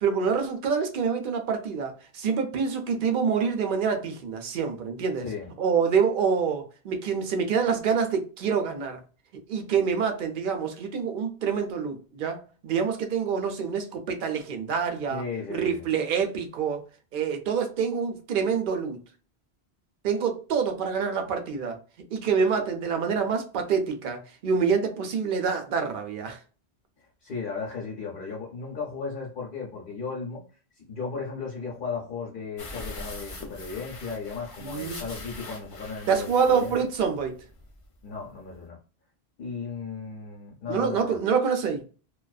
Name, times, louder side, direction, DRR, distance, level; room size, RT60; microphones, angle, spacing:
voice 1, 0.0-5.3 5.6-9.0 9.5-15.2 15.5-16.9 17.1-19.0 20.0-21.7 22.1-26.4 34.6-35.0 36.1-37.3 40.7-41.8, right 6 dB, 60° right, 0.7 m, -26 dB
voice 2, 5.2-5.5 15.1-15.8 27.2-30.4 30.8-36.9 38.0-38.8 39.4-41.2, left 5 dB, 60° left, 0.9 m, -35 dB
sound 1, 32.6-37.9 38.1-38.2 38.5-38.6, left 2 dB, 40° left, 0.5 m, -42 dB
2.4 x 2.3 x 2.3 m
omnidirectional pair, 1.1 m